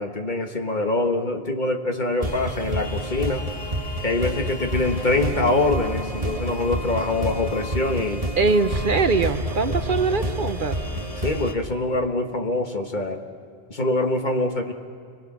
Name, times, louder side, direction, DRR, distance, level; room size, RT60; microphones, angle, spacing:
voice 1, 0.0-3.4 4.0-8.2 11.2-13.2 13.7-14.7, left 2 dB, 45° left, 4 dB, 1.7 m, -24 dB
sound 1, 2.2-11.5, equal, 35° right, 1.9 m, -29 dB
voice 2, 8.4-10.8, right 4 dB, 55° right, 10 dB, 0.9 m, -22 dB
29.0 x 21.0 x 6.1 m, 2.3 s
omnidirectional pair, 1.1 m